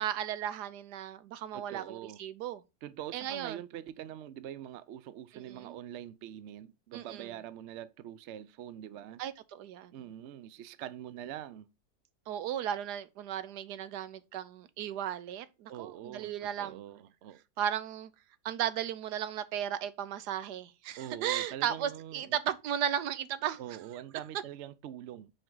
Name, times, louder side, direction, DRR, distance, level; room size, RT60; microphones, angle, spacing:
voice 1, 0.0-2.6 3.1-3.6 5.3-5.8 6.9-7.3 9.2-9.9 12.3-16.8 17.6-18.1 18.4-23.6, right 10 dB, 90° right, 1.3 m, -35 dB
voice 2, 1.5-2.2 2.8-9.2 9.9-11.7 15.7-17.4 21.0-22.4 23.6-25.3, right 11 dB, 65° right, 0.7 m, -44 dB
7.6 x 4.6 x 3.8 m
omnidirectional pair, 1.7 m